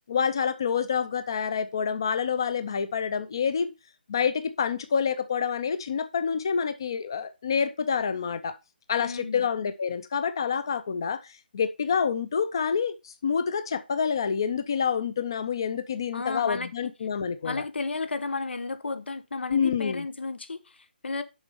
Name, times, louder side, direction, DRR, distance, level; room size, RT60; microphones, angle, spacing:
voice 1, 0.1-3.7 4.1-8.6 8.9-11.2 11.5-17.6 19.5-20.0, left 6 dB, 25° left, 0.5 m, -27 dB
voice 2, 9.0-9.5 16.1-16.7 17.4-21.2, left 3 dB, 90° left, 1.3 m, -33 dB
7.1 x 5.2 x 5.4 m
hypercardioid pair, 180°, 6 cm